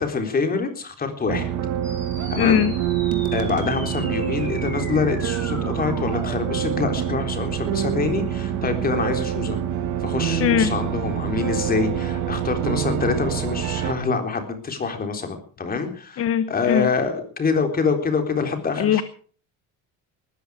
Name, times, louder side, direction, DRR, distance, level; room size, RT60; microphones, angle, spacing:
voice 1, 0.0-1.5 2.3-2.6 3.3-9.6 10.0-19.0, left 4 dB, 30° left, 6 dB, 3.7 m, -25 dB
sound 1, 1.3-13.9, right 10 dB, 70° right, 2.6 m, -26 dB
sound 2, 1.8-6.8, equal, 5° left, 6.3 m, -39 dB
voice 2, 2.4-2.7 10.4-10.7 16.2-16.9 18.8-19.0, left 9 dB, 45° left, 13 dB, 1.1 m, -20 dB
19.5 x 14.0 x 4.9 m, 0.43 s
cardioid pair, 145°, 32 cm